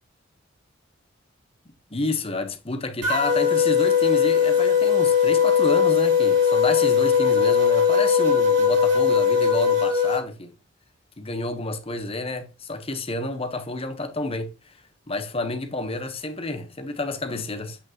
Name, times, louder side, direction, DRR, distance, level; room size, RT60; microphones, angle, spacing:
voice 1, 1.9-10.5 11.2-14.7 15.1-17.8, left 2 dB, 30° left, 1.1 m, -30 dB
sound 1, 3.0-10.2, left 7 dB, 60° right, 4.3 m, -19 dB
8.6 x 5.4 x 3.0 m
head